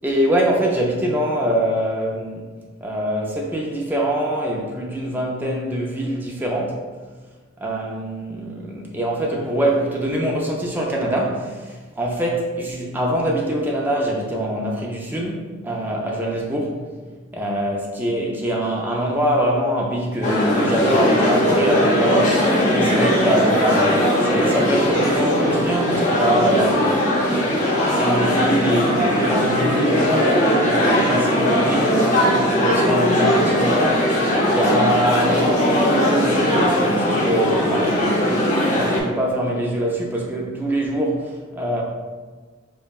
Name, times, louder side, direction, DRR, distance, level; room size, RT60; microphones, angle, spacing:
voice 1, 0.0-2.5 2.8-6.8 7.6-16.8 17.3-26.9 27.3-27.5 27.9-34.1 34.5-38.3 38.7-41.8, right 1 dB, 10° right, -2 dB, 0.4 m, -23 dB
sound 1, 20.2-39.0, equal, 35° left, 0.7 m, -19 dB
5.1 x 2.2 x 2.3 m, 1.4 s
head